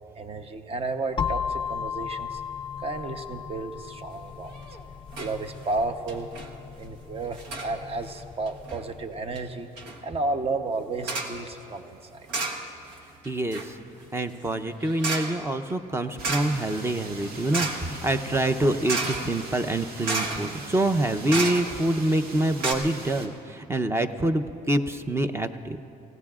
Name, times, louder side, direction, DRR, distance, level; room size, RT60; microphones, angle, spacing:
voice 1, 0.2-2.4 2.8-4.7 5.2-6.3 6.8-9.7 10.0-12.3, right 3 dB, 35° right, 8 dB, 0.9 m, -32 dB
sound 1, 1.2-9.0, left 7 dB, 30° left, 0.4 m, -35 dB
sound 2, 4.5-4.8 5.1-5.3 5.6-5.7 6.1-6.5 7.3-7.7 8.5-8.8 9.3-9.4 9.8-10.0 11.0-11.4 12.3-13.0 13.2-22.0 22.3-22.4 22.6-22.7, right 3 dB, 90° right, 1.3 m, -33 dB
voice 2, 13.3-13.7 14.1-25.8, right 1 dB, 15° right, 9 dB, 0.7 m, -26 dB
sound 3, 16.2-23.3, right 2 dB, 65° right, 1.7 m, -42 dB
28.5 x 16.0 x 2.4 m, 2.8 s
cardioid pair, 110°, 17 cm